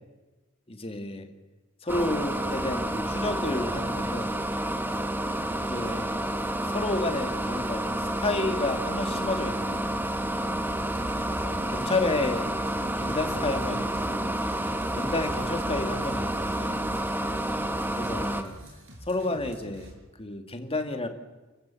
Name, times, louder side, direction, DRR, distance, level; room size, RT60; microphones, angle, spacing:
voice 1, 0.7-1.3 1.8-4.3 5.6-6.1 6.6-10.6 11.4-12.5 13.0-14.4 14.9-16.8 17.5-17.6 18.0-18.5 19.1-19.9 20.2-21.1, left 2 dB, 30° left, 6 dB, 2.3 m, -31 dB
Heat Station, 1.9-18.4, right 1 dB, 10° right, 1.5 m, -29 dB
sound 1, 10.7-19.9, equal, 65° right, 5.7 m, -43 dB
30.0 x 14.5 x 7.7 m, 1.2 s
head